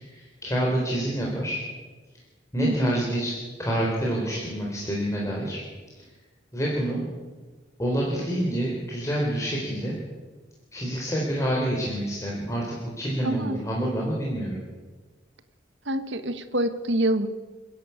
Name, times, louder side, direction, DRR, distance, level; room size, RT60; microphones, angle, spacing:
voice 1, 0.0-1.6 2.5-3.3 3.6-5.6 6.5-7.0 7.8-9.9 10.7-14.6, right 1 dB, 15° left, -3 dB, 4.0 m, -27 dB
voice 2, 2.6-2.9 13.2-13.6 15.8-17.3, right 1 dB, 70° right, 10 dB, 1.5 m, -26 dB
29.5 x 10.5 x 8.5 m, 1.3 s
head